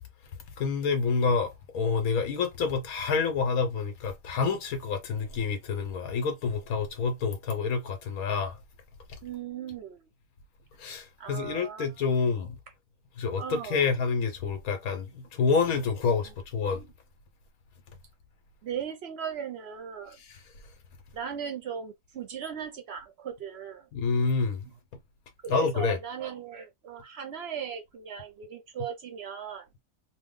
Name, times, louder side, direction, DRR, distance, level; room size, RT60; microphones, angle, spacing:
voice 1, 0.6-8.6 9.1-9.2 10.8-12.6 13.2-16.8 20.2-20.4 23.9-24.7 25.5-26.0, left 5 dB, 75° left, 1.2 m, -28 dB
voice 2, 9.2-10.1 11.2-11.9 13.4-13.9 16.2-16.3 16.6-16.9 18.6-20.2 21.1-23.9 25.4-29.7, right 8 dB, 60° right, 0.7 m, -38 dB
2.9 x 2.1 x 3.6 m
omnidirectional pair, 1.5 m